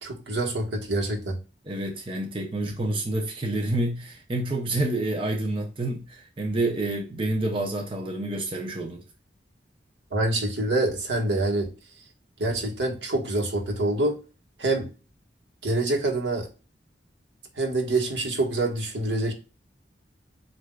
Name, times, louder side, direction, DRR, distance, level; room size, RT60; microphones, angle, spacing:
voice 1, 0.0-1.4 10.1-11.7 12.4-14.2 14.6-14.9 15.6-16.5 17.6-19.3, right 2 dB, 85° right, 1.5 m, -26 dB
voice 2, 1.6-9.0, right 2 dB, 30° right, 0.7 m, -28 dB
7.8 x 2.7 x 2.3 m
head